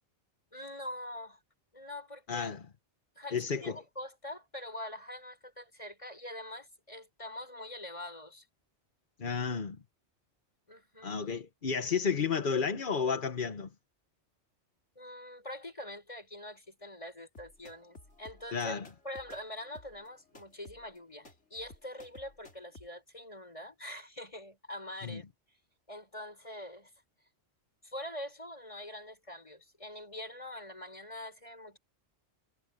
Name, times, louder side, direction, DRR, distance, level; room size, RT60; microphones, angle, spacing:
voice 1, 0.5-1.4 1.7-2.5 3.1-8.5 10.7-11.2 14.9-18.8 19.0-25.2 25.9-26.9 27.8-31.8, left 1 dB, 30° left, 6.7 m, -44 dB
voice 2, 2.3-2.6 3.3-3.7 9.2-9.8 11.0-13.7 18.5-18.8 25.0-25.2, left 6 dB, 50° left, 1.2 m, -32 dB
sound 1, 17.4-22.9, left 2 dB, 80° left, 4.0 m, -55 dB
omnidirectional pair, 1.2 m